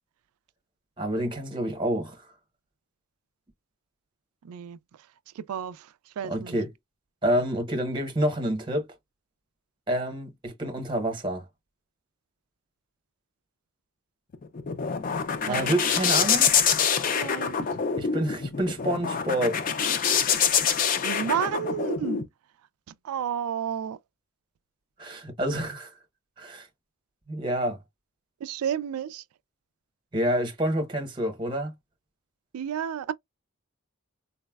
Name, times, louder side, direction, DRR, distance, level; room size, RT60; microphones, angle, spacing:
voice 1, 1.0-2.2 6.3-6.7 7.2-8.9 9.9-11.4 15.5-16.5 18.0-19.6 20.0-20.1 25.0-25.9 26.4-26.7 27.3-27.8 30.1-31.7, right 1 dB, 20° right, 0.8 m, -28 dB
voice 2, 4.4-6.6 15.5-15.8 17.2-17.8 21.0-22.3 22.9-24.0 28.4-29.2 32.5-33.1, right 8 dB, 90° right, 0.3 m, -32 dB
sound 1, 14.3-22.2, left 7 dB, 40° left, 0.4 m, -25 dB
4.0 x 2.1 x 2.2 m
head